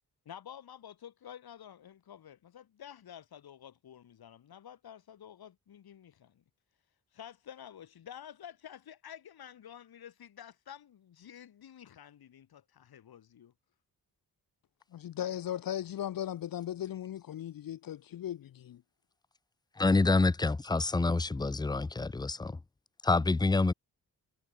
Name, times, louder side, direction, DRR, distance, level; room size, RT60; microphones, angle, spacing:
voice 1, 0.2-6.4 7.1-13.5, left 9 dB, 85° left, 4.3 m, -50 dB
voice 2, 14.9-18.8, left 11 dB, 65° left, 0.8 m, -37 dB
voice 3, 19.8-22.5 23.0-23.7, left 3 dB, 10° left, 0.5 m, -27 dB
cardioid pair, 90°, 36 cm